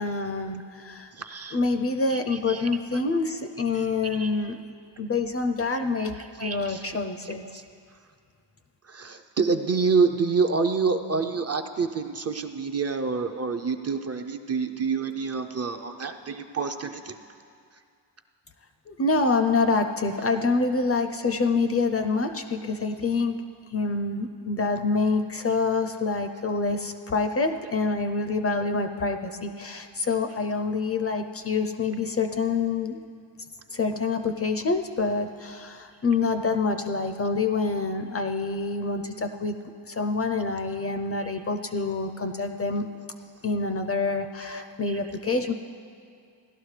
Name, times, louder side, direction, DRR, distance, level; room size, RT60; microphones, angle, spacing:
voice 1, 0.0-1.1 1.5-4.7 5.0-6.1 6.4-7.5 18.9-23.4 23.7-33.0 33.7-42.9 43.4-45.5, left 3 dB, 35° left, 7 dB, 0.4 m, -26 dB
voice 2, 1.1-1.6 2.1-2.7 3.7-4.4 6.2-7.0 7.4-7.6 8.9-17.1 41.2-41.4 44.4-45.0, right 4 dB, 35° right, 6 dB, 0.4 m, -28 dB
17.0 x 12.0 x 3.2 m, 2.3 s
wide cardioid pair, 150°, 44 cm